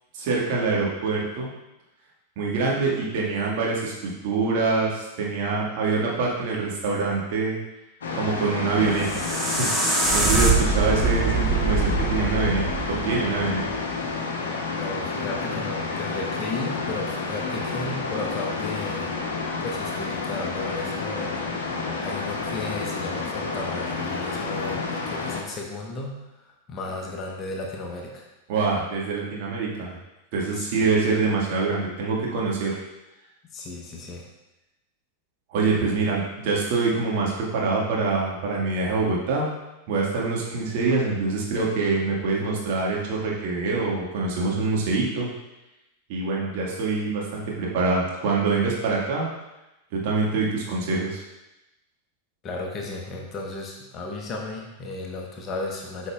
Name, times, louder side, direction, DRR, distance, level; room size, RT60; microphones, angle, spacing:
voice 1, 0.1-1.5 2.4-7.6 8.1-9.0 9.4-12.6 13.0-13.6 28.5-30.0 30.3-32.8 35.5-39.5 39.9-45.3 46.1-49.3 49.9-51.2, right 4 dB, 45° right, -3 dB, 1.7 m, -25 dB
sound 1, 8.0-25.4, left 4 dB, 65° left, 0.9 m, -30 dB
sound 2, 8.7-13.8, right 3 dB, 5° right, 1.0 m, -24 dB
voice 2, 14.7-19.1 19.6-26.2 26.7-28.3 30.5-31.0 33.5-34.2 52.4-56.1, left 2 dB, 30° left, 0 dB, 1.1 m, -34 dB
8.2 x 5.3 x 2.4 m, 0.96 s
figure-of-eight pair, 90°, 0 cm